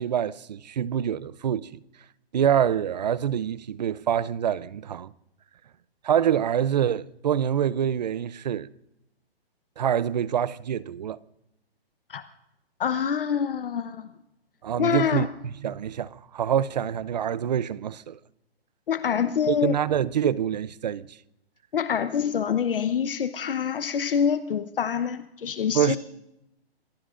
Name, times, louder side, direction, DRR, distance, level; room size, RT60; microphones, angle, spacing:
voice 1, 0.0-1.7 2.3-5.1 6.0-8.7 9.8-11.2 14.6-15.3 15.6-18.2 19.5-21.2 25.7-26.0, right 9 dB, 45° right, 0.6 m, -25 dB
voice 2, 12.8-14.1 14.8-15.3 18.9-19.8 21.7-26.0, left 7 dB, 60° left, 1.0 m, -26 dB
27.5 x 20.5 x 2.5 m
hypercardioid pair, 160°, 31 cm